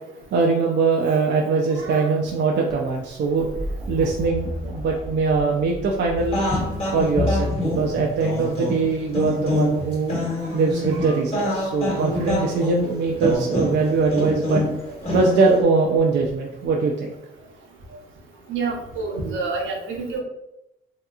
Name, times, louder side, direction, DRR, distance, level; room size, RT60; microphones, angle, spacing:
voice 1, 0.3-3.5 3.9-6.4 6.9-10.2 10.5-14.6 15.1-17.1, right 4 dB, 60° right, 0 dB, 0.5 m, -22 dB
voice 2, 1.8-2.1 10.9-11.1 18.5-20.2, right 4 dB, 80° right, 0 dB, 0.9 m, -28 dB
sound 1, 2.7-8.6 10.2-10.7 13.3-13.4, equal, ahead, 0.5 m, -36 dB
sound 2, 6.2-15.6, left 1 dB, 30° left, 1.2 m, -26 dB
3.2 x 2.8 x 2.4 m, 0.85 s
cardioid pair, 90°, 20 cm